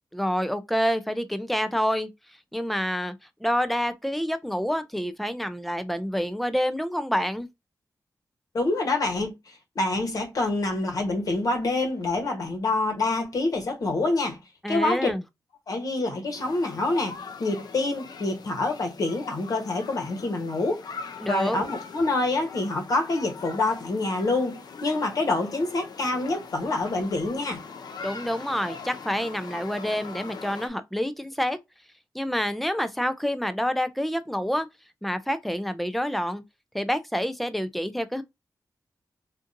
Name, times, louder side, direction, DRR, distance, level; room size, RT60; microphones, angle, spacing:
voice 1, 0.1-2.1 2.5-3.1 3.4-7.5 14.6-15.2 21.2-21.6 28.0-31.6 32.1-34.7 35.0-36.4 36.7-38.2, equal, ahead, 0.3 m, -27 dB
voice 2, 8.5-14.4 14.7-15.1 15.7-20.8 21.3-27.6, left 2 dB, 60° left, 1.1 m, -26 dB
sound 1, 16.3-30.7, left 5 dB, 75° left, 0.5 m, -42 dB
3.8 x 2.5 x 2.6 m
wide cardioid pair, 180°, 7 cm